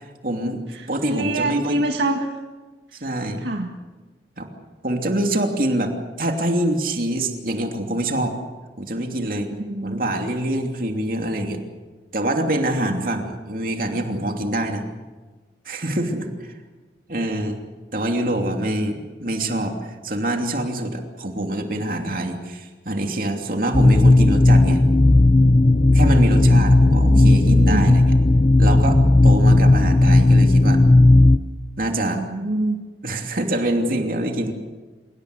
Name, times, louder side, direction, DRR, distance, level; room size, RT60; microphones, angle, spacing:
voice 1, 0.0-0.6 0.9-1.8 2.9-3.4 4.4-4.5 4.8-5.9 6.2-8.4 8.8-9.5 9.8-11.6 12.1-14.8 15.6-16.5 17.1-17.6 17.9-24.8 25.9-28.0 28.6-29.0 29.2-30.8 31.8-32.2 33.0-34.5, right 1 dB, 50° right, 3 dB, 2.9 m, -25 dB
voice 2, 0.7-2.3 3.4-3.8 9.7-10.0 12.8-13.0 26.9-27.9 32.0-32.8, right 1 dB, 85° right, 2 dB, 2.0 m, -25 dB
sound 1, 23.7-31.4, left 2 dB, 30° left, 0.7 m, -14 dB
28.0 x 18.5 x 8.2 m, 1.3 s
head